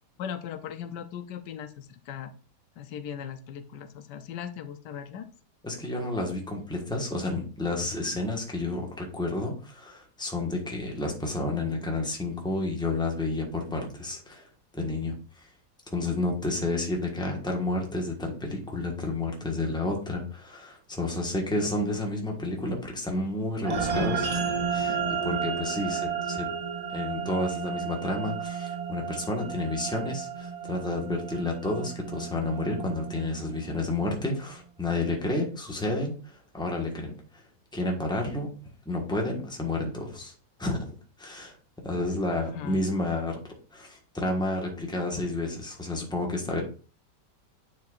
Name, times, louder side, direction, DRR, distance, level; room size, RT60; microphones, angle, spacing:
voice 1, 0.2-2.3 2.8-5.3 42.3-42.8, left 8 dB, 85° left, 10 dB, 1.3 m, -38 dB
voice 2, 5.6-14.5 14.7-15.5 15.9-26.5 26.9-37.4 37.7-38.5 38.8-40.3 40.6-40.9 41.2-41.5 41.8-43.4 43.7-46.6, left 2 dB, 5° left, 0 dB, 1.2 m, -30 dB
sound 1, 23.6-34.3, right 6 dB, 50° right, 0.4 m, -32 dB
9.3 x 4.7 x 2.5 m, 0.39 s
omnidirectional pair, 1.8 m